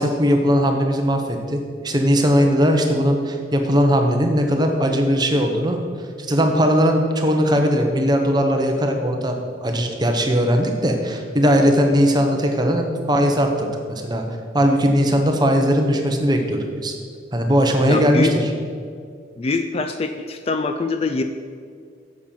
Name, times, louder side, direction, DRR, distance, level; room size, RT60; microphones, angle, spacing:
voice 1, 0.0-5.8 6.2-14.2 14.5-17.0 17.3-18.5, equal, 20° right, 3 dB, 0.9 m, -19 dB
voice 2, 17.9-18.3 19.4-21.2, left 3 dB, 30° left, 8 dB, 0.3 m, -23 dB
7.5 x 7.1 x 5.6 m, 2.2 s
head